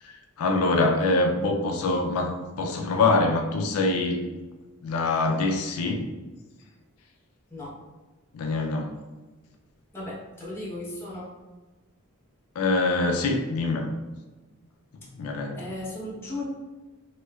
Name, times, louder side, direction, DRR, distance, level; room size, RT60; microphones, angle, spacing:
voice 1, 0.0-4.2 4.8-6.1 8.3-8.9 12.6-13.9 15.1-15.6, left 3 dB, 90° left, 2 dB, 0.4 m, -24 dB
voice 2, 9.9-11.3 15.0-15.1 15.6-16.5, left 1 dB, 10° left, -7 dB, 0.9 m, -36 dB
3.1 x 3.0 x 2.3 m, 1.2 s
head